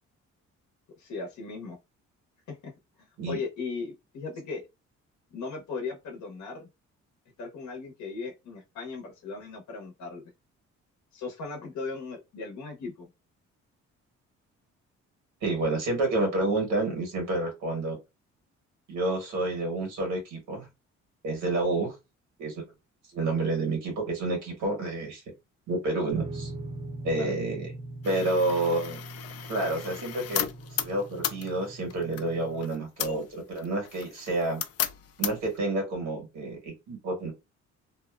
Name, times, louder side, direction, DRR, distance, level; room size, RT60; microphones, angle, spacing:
voice 1, 1.0-1.8 2.5-4.6 5.3-6.7 7.4-10.3 11.1-13.1 27.2-27.3, left 4 dB, 70° left, 1 dB, 0.8 m, -37 dB
voice 2, 15.4-18.0 18.9-20.7 21.2-21.9 22.4-22.6 23.1-25.2 25.7-26.5 27.0-27.7 28.0-29.0 29.5-30.5 30.8-34.6 35.2-37.3, right 2 dB, 85° right, 1 dB, 1.3 m, -29 dB
sound 1, 26.1-32.6, right 2 dB, 20° right, 0.5 m, -41 dB
sound 2, 28.0-35.6, left 10 dB, 55° left, 0.4 m, -36 dB
2.7 x 2.1 x 2.3 m, 0.24 s
cardioid pair, 90°, 30 cm